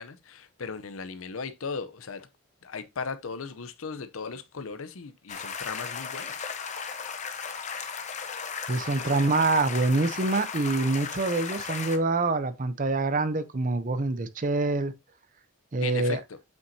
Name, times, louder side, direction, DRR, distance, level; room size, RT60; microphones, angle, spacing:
voice 1, 0.0-2.3 2.6-6.5 15.8-16.2, left 5 dB, 80° left, 0.7 m, -37 dB
sound 1, 5.3-12.0, left 6 dB, 35° left, 0.9 m, -36 dB
voice 2, 8.7-14.9 15.7-16.2, right 3 dB, 40° right, 0.6 m, -25 dB
7.9 x 5.7 x 2.7 m
head